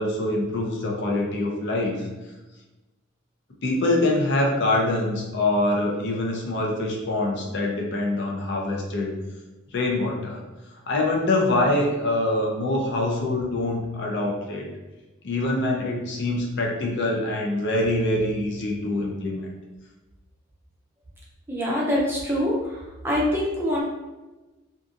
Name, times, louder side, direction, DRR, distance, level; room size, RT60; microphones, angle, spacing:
voice 1, 0.0-2.1 3.6-9.1 9.7-10.4 10.9-14.7 15.2-19.5, left 2 dB, 60° left, 0 dB, 0.5 m, -24 dB
voice 2, 21.5-22.8 23.0-23.8, equal, 10° right, -5 dB, 0.5 m, -24 dB
2.7 x 2.5 x 2.4 m, 1.1 s
head